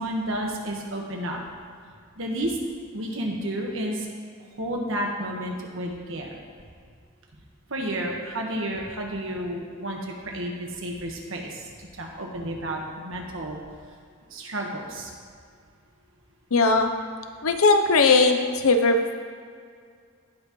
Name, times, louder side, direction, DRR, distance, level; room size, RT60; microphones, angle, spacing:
voice 1, 0.0-1.4 2.2-2.6 2.9-4.1 4.6-6.3 7.7-13.6 14.3-15.1, right 1 dB, 65° right, 0 dB, 1.5 m, -31 dB
voice 2, 16.5-16.9 17.4-19.0, left 3 dB, 85° left, 7 dB, 0.8 m, -19 dB
17.5 x 6.0 x 3.1 m, 2.2 s
head